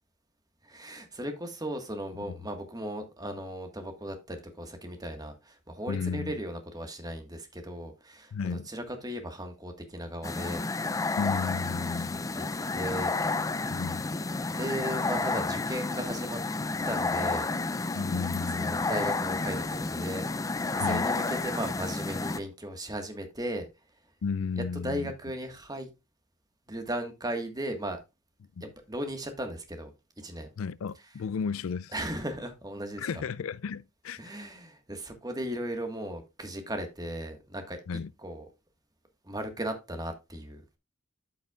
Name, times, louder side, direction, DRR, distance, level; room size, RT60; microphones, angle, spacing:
voice 1, 0.6-10.9 12.0-12.1 12.3-13.1 14.5-16.4 16.8-17.5 18.5-20.3 20.7-23.7 24.6-25.9 26.7-28.0 28.6-29.9 30.2-30.5 31.9-33.0 34.2-37.8 38.2-38.4 39.2-40.8, right 1 dB, 20° right, 1.5 m, -36 dB
voice 2, 5.9-6.4 8.3-8.7 11.2-12.2 13.7-14.2 17.9-18.8 20.8-21.1 24.2-25.1 28.6-28.7 30.6-31.9 33.0-34.2 37.9-38.1, left 5 dB, 85° left, 0.4 m, -33 dB
sound 1, 10.2-22.4, left 3 dB, 15° left, 0.4 m, -31 dB
13.5 x 5.6 x 2.4 m
head